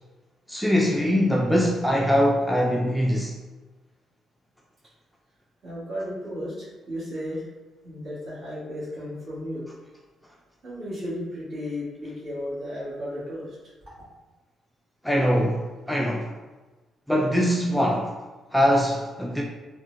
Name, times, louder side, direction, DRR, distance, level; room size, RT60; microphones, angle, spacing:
voice 1, 0.5-3.3 15.0-16.3 17.1-18.1 18.5-19.4, equal, ahead, 0.3 m, -22 dB
voice 2, 5.6-7.4 7.8-9.6 10.6-13.6, equal, 45° right, 1.5 m, -34 dB
3.7 x 2.1 x 2.6 m
cardioid pair, 90°, 0 cm